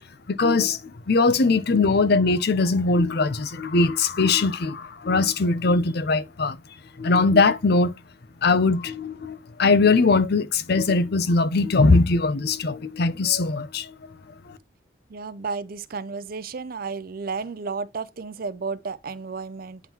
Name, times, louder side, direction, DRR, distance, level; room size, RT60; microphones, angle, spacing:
voice 1, 0.3-6.6 7.0-7.9 8.4-13.9 14.5-14.6, left 3 dB, 60° left, 0.6 m, -21 dB
voice 2, 15.1-19.8, right 4 dB, 50° right, 0.6 m, -32 dB
9.2 x 3.7 x 2.9 m
head